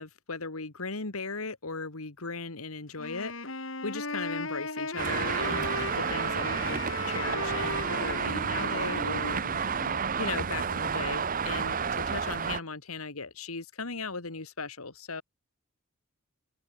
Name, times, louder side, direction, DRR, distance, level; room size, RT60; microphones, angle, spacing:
voice 1, 0.0-6.8 7.1-9.6 10.2-15.2, left 4 dB, 85° left, 2.1 m, -37 dB
Wind instrument woodwind instrument, 2.9-10.8, left 3 dB, 65° left, 4.8 m, -38 dB
Traffic noise roadway noise, 5.0-12.6, right 6 dB, 40° right, 0.7 m, -30 dB
head